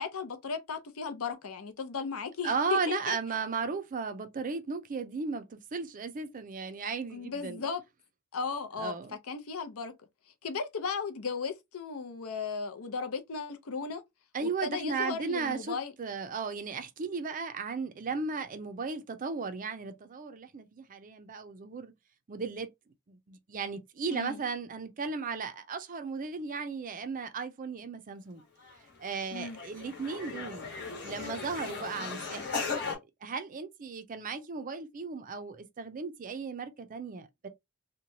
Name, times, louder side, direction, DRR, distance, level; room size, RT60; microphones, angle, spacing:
voice 1, 0.0-3.2 7.1-7.8 8.3-9.0 9.3-9.9 10.4-14.0 14.4-15.9 24.1-24.4 29.3-29.6, left 5 dB, 70° left, 0.6 m, -36 dB
voice 2, 2.4-7.7 8.8-9.2 14.3-21.9 22.3-22.7 23.1-28.4 29.0-30.7 31.0-32.6 32.9-37.5, right 4 dB, 35° right, 0.4 m, -35 dB
sound 1, 28.6-28.8 29.1-32.9, left 4 dB, 50° left, 1.0 m, -37 dB
2.9 x 2.2 x 2.6 m
head